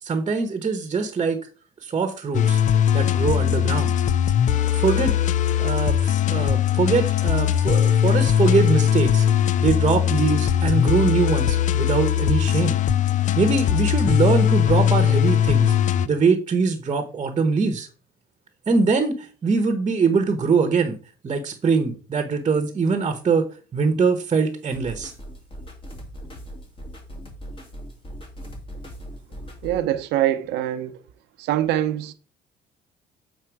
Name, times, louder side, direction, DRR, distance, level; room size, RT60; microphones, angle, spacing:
voice 1, 0.0-1.4 1.8-2.6 2.9-3.9 4.7-5.1 5.6-9.3 9.6-12.8 13.4-15.7 16.0-17.9 18.7-21.0 21.2-23.4 23.7-25.1, right 4 dB, 30° right, 1.1 m, -22 dB
sound 1, 2.3-16.1, left 9 dB, 50° left, 0.4 m, -20 dB
sound 2, 24.7-29.8, equal, 30° left, 2.4 m, -39 dB
voice 2, 29.6-31.0 31.4-32.1, right 12 dB, 90° right, 0.7 m, -24 dB
7.6 x 4.4 x 4.6 m
cardioid pair, 110°, 17 cm